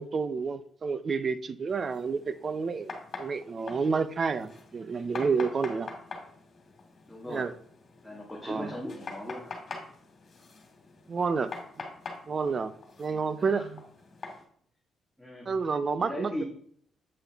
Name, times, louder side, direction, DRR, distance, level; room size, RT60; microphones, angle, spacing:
voice 1, 0.0-5.9 7.3-7.5 8.5-8.7 11.1-11.5 11.8-11.9 12.3-12.7 13.0-13.8 15.5-16.4, right 5 dB, 40° right, 0.6 m, -30 dB
sound 1, 1.7-14.4, left 4 dB, 45° left, 2.5 m, -45 dB
voice 2, 7.1-7.5 8.0-9.6 13.4-13.6 15.2-15.5 16.0-16.4, left 1 dB, ahead, 1.9 m, -38 dB
8.7 x 5.6 x 3.6 m
cardioid pair, 90°, 0 cm